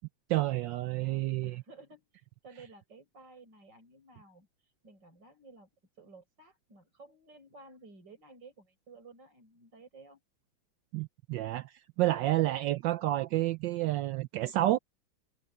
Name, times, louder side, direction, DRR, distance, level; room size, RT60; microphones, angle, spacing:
voice 1, 0.3-1.6 10.9-14.8, right 15 dB, 75° right, 1.1 m, -29 dB
voice 2, 1.0-5.7 6.0-10.2, right 3 dB, 55° right, 7.1 m, -55 dB
omnidirectional pair, 2.3 m